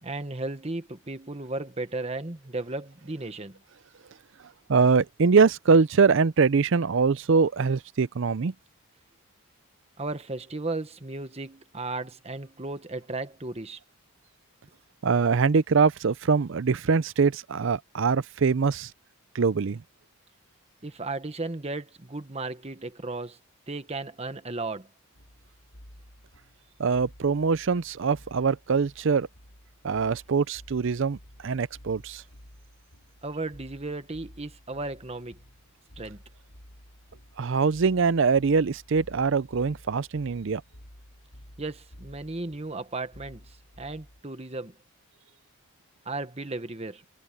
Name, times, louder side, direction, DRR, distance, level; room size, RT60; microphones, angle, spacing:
voice 1, 0.0-3.6 10.0-13.8 20.8-23.4 23.7-24.9 33.2-35.4 36.0-36.2 41.6-44.8 46.0-47.0, right 2 dB, 30° right, 1.2 m, -35 dB
voice 2, 4.7-8.5 15.0-18.9 19.3-19.8 26.8-29.3 29.8-31.2 31.4-32.2 37.4-40.6, right 5 dB, 55° right, 0.5 m, -23 dB
sound 1, 25.1-44.2, equal, 80° left, 5.0 m, -52 dB
head